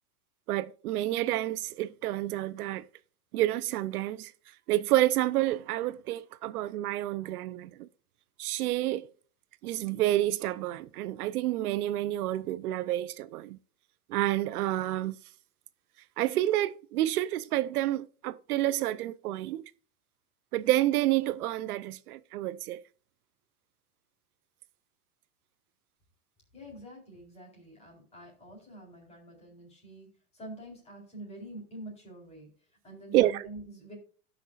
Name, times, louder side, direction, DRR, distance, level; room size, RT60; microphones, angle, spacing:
voice 1, 0.5-2.8 3.3-4.3 4.7-7.9 8.4-9.1 9.6-13.6 14.1-15.2 16.2-19.6 20.5-22.8 33.1-33.5, right 15 dB, 80° right, 0.7 m, -29 dB
voice 2, 26.5-32.5 32.8-33.9, right 1 dB, 15° left, 3.9 m, -46 dB
16.5 x 6.0 x 2.4 m
supercardioid pair, 160°, 44 cm